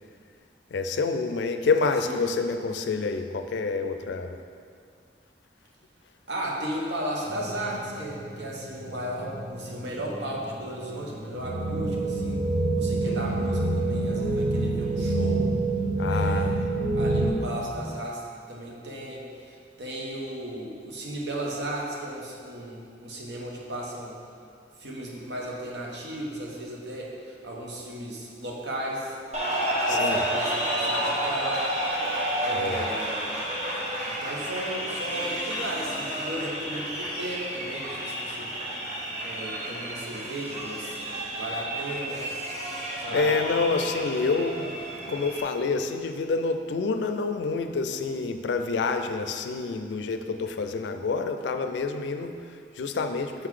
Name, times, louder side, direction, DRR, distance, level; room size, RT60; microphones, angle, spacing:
voice 1, 0.7-4.4 13.0-13.2 16.0-16.6 29.9-30.3 32.5-32.9 43.1-44.8 45.1-53.5, left 4 dB, 75° left, 7 dB, 0.4 m, -28 dB
voice 2, 6.3-12.4 12.7-15.5 16.1-16.5 17.0-18.2 18.5-24.1 24.8-29.1 29.9-31.6 32.4-33.3 34.0-38.5 39.2-41.0 41.3-42.3 43.0-43.3, right 1 dB, 70° right, -2 dB, 1.0 m, -35 dB
sound 1, 7.3-17.3, right 2 dB, 25° right, 0.6 m, -27 dB
sound 2, 29.3-45.4, right 1 dB, 40° right, 1.0 m, -30 dB
6.4 x 3.8 x 4.8 m, 2.2 s
head